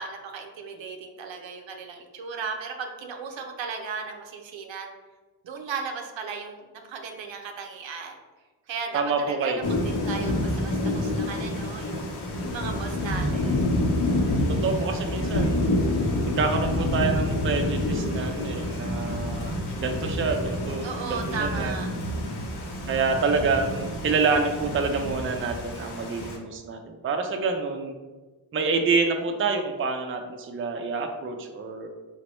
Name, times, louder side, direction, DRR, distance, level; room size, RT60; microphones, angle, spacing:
voice 1, 0.0-4.9 5.4-8.2 8.7-12.1 12.5-13.6 20.8-21.9 22.3-22.7, right 5 dB, 75° right, 3 dB, 0.6 m, -36 dB
voice 2, 8.9-9.7 14.5-15.6 16.4-21.7 22.9-27.9 28.5-31.9, right 4 dB, 30° right, 4 dB, 0.4 m, -27 dB
Thunder / Rain, 9.6-26.4, left 1 dB, 60° left, 0.8 m, -28 dB
4.3 x 2.0 x 3.0 m, 1.3 s
cardioid pair, 55°, 45 cm